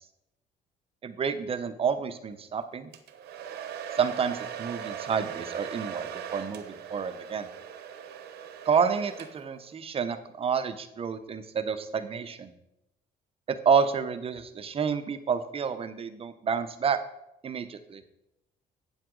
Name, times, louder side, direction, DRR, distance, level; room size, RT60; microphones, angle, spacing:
voice 1, 1.0-2.9 4.0-6.1 6.3-6.6 6.9-7.5 8.6-12.5 13.5-17.0 17.4-18.0, right 6 dB, 35° right, 10 dB, 0.8 m, -29 dB
Domestic sounds home sounds, 2.9-9.6, right 8 dB, 70° right, 1.0 m, -40 dB
8.8 x 7.7 x 3.8 m, 0.86 s
cardioid pair, 110°, 17 cm